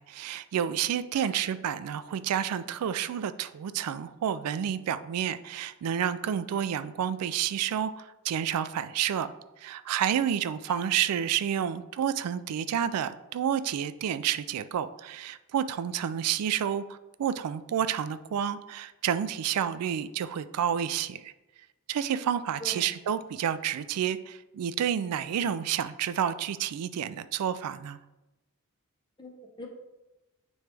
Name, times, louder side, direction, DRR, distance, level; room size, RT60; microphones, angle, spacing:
voice 1, 0.0-9.3 9.6-21.3 21.9-28.0, right 9 dB, 90° right, 13 dB, 0.3 m, -30 dB
voice 2, 29.2-29.7, left 1 dB, 20° left, 1 dB, 0.8 m, -43 dB
9.2 x 3.1 x 3.3 m, 1.0 s
head